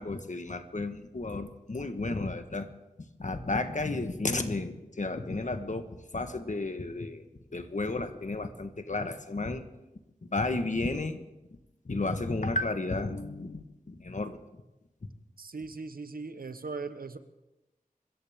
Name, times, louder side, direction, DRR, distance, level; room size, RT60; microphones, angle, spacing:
voice 1, 0.0-2.7 3.2-5.8 6.1-7.2 7.5-9.6 10.3-11.2 11.9-14.4, left 2 dB, 55° left, 8 dB, 1.3 m, -32 dB
voice 2, 15.4-17.2, right 4 dB, 90° right, 11 dB, 1.0 m, -39 dB
25.5 x 14.0 x 3.6 m, 0.98 s
wide cardioid pair, 60°, 15 cm